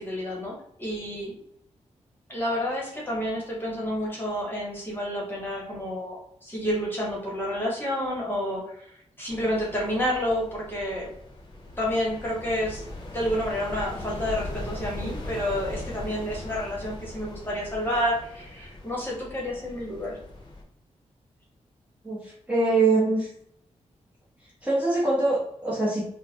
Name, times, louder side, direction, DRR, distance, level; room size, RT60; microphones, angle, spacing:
voice 1, 0.0-1.4 2.3-11.1 11.8-12.8 13.1-20.2, equal, 15° left, -4 dB, 1.2 m, -29 dB
sound 1, 9.3-20.6, left 1 dB, 40° left, 0.8 m, -39 dB
voice 2, 22.0-23.3 24.6-26.0, right 3 dB, 10° right, -7 dB, 1.0 m, -23 dB
3.8 x 2.2 x 2.8 m, 0.72 s
wide cardioid pair, 120°, 12 cm